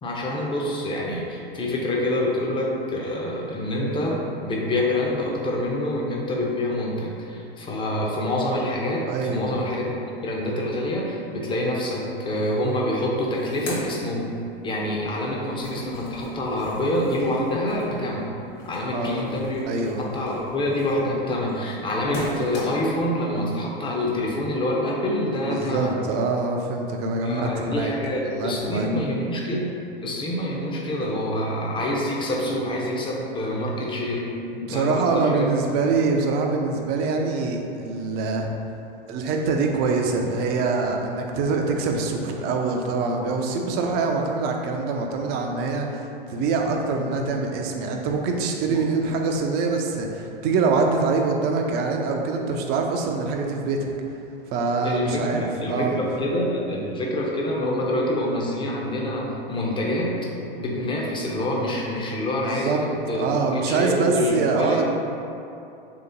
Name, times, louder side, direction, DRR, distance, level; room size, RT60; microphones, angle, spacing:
voice 1, 0.0-9.9 10.2-14.4 14.6-18.4 18.7-26.0 27.2-34.4 34.7-35.5 48.7-48.8 54.8-60.3 60.5-64.8, left 1 dB, 15° left, -2 dB, 0.6 m, -26 dB
voice 2, 9.1-9.5 18.9-19.3 19.7-20.0 25.4-27.9 28.2-28.9 34.5-38.5 39.1-53.9 54.5-56.1 62.4-62.8 63.1-64.8, right 4 dB, 35° right, 2 dB, 0.5 m, -24 dB
sound 1, 12.6-12.7 13.0-14.8 15.1-23.0, left 1 dB, 40° left, 1.0 m, -39 dB
3.2 x 2.9 x 3.8 m, 2.7 s
hypercardioid pair, 95°, 29 cm